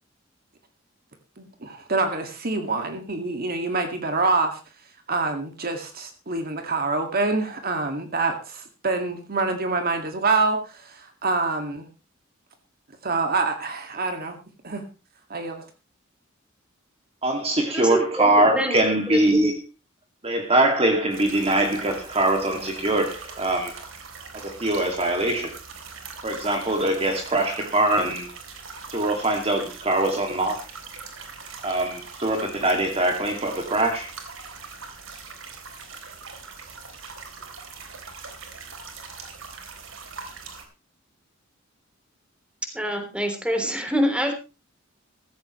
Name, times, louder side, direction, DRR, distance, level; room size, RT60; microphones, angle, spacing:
voice 1, 1.4-4.6 5.1-11.8 13.0-14.4 14.6-14.8 15.3-15.6, right 3 dB, 50° right, 2.1 m, -26 dB
voice 2, 17.2-19.6 20.2-23.8 24.4-25.5 26.2-28.3 28.9-30.6 31.6-34.1, right 1 dB, 30° right, 2.3 m, -22 dB
voice 3, 17.7-18.7 19.1-19.5 42.7-44.3, equal, 5° right, 3.3 m, -26 dB
sound 1, 21.1-40.6, right 4 dB, 90° right, 3.5 m, -41 dB
15.5 x 15.0 x 3.1 m
head